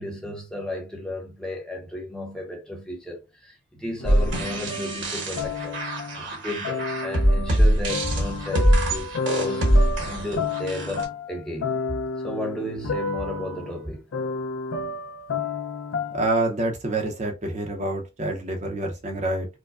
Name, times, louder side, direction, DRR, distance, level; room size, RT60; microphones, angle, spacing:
voice 1, 0.0-5.8 6.2-9.7 10.1-11.7 12.2-14.1, left 1 dB, 5° left, 0.7 m, -34 dB
sound 1, 4.0-6.3 6.6-16.4, left 4 dB, 75° left, 0.5 m, -31 dB
sound 2, 4.0-11.0, right 1 dB, 60° right, 1.0 m, -23 dB
voice 2, 16.1-19.5, right 2 dB, 35° right, 0.6 m, -27 dB
4.6 x 2.2 x 2.4 m
head